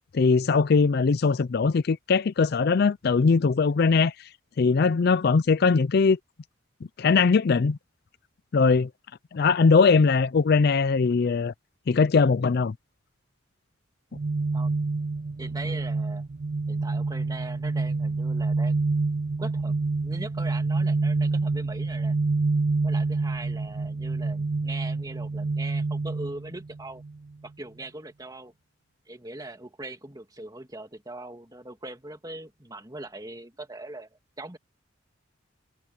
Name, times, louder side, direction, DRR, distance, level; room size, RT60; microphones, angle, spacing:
voice 1, 0.1-4.1 4.6-6.2 7.0-7.8 8.5-8.9 9.3-11.5 11.9-12.7, left 4 dB, 50° left, 0.4 m, -21 dB
sound 1, 14.1-27.2, right 3 dB, 40° right, 0.4 m, -27 dB
voice 2, 15.4-16.2 16.7-18.8 19.4-19.7 20.0-22.2 22.8-27.0 27.4-28.5 29.1-34.1 34.4-34.6, right 2 dB, 20° right, 2.4 m, -40 dB
head